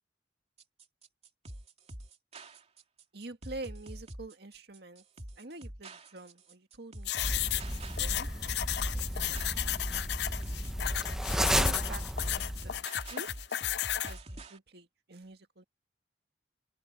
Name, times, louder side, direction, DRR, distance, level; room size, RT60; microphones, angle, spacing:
sound 1, 0.6-14.6, right 1 dB, 40° right, 3.0 m, -46 dB
voice 1, 3.1-5.0 5.4-7.7 8.0-8.3 11.3-12.0 12.3-12.7 13.1-13.3 14.1-15.6, right 2 dB, 65° right, 2.0 m, -46 dB
sound 2, 7.1-14.1, left 13 dB, 65° left, 0.5 m, -34 dB
sound 3, 7.2-12.8, equal, 5° right, 0.8 m, -33 dB
open air
head